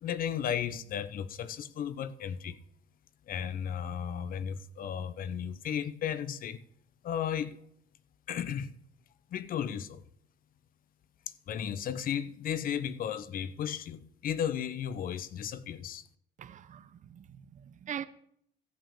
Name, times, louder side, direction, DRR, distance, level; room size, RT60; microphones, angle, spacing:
voice 1, 0.0-2.6 3.3-6.6 7.0-7.6 8.3-8.7 9.3-10.0 11.5-16.0, left 9 dB, 55° left, 0.8 m, -34 dB
voice 2, 16.4-18.0, right 9 dB, 45° right, 0.8 m, -42 dB
14.5 x 6.0 x 7.0 m
cardioid pair, 110°, 17 cm